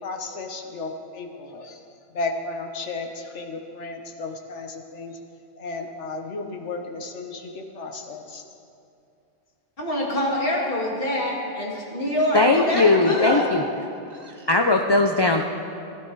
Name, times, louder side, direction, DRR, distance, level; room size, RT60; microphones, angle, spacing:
voice 1, 0.0-1.8 2.1-5.2 5.6-8.4, left 3 dB, 85° left, 3 dB, 1.4 m, -34 dB
voice 2, 9.8-13.5, equal, 55° left, -3 dB, 2.4 m, -25 dB
voice 3, 12.3-13.6 14.5-15.4, left 3 dB, 35° left, 4 dB, 0.4 m, -19 dB
16.5 x 11.0 x 4.7 m, 2.5 s
omnidirectional pair, 1.2 m